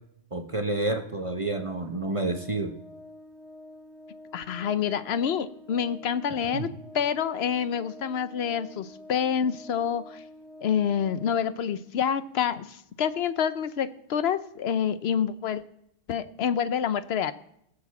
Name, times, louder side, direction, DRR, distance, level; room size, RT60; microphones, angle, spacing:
voice 1, 0.3-2.8 6.5-6.7, right 2 dB, 30° right, 5 dB, 0.9 m, -29 dB
Organ, 1.3-12.0, left 1 dB, 65° right, 1.7 m, -48 dB
voice 2, 4.3-10.2 10.6-15.6 16.1-17.3, left 8 dB, 65° left, 13 dB, 0.9 m, -27 dB
18.5 x 6.8 x 7.0 m, 0.76 s
omnidirectional pair, 1.2 m